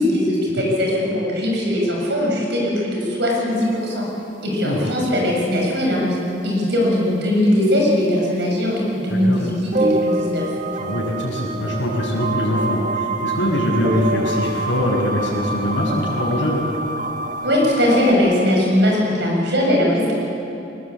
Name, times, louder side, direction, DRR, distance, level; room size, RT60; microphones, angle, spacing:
voice 1, 0.0-4.1 4.4-6.2 6.4-10.4 17.4-20.2, left 1 dB, 60° right, -2 dB, 7.3 m, -20 dB
voice 2, 9.1-9.4 10.7-16.6, equal, 80° left, -4 dB, 7.4 m, -23 dB
sound 1, 9.7-18.1, right 2 dB, 40° right, 1.4 m, -26 dB
23.0 x 20.5 x 8.4 m, 2.9 s
head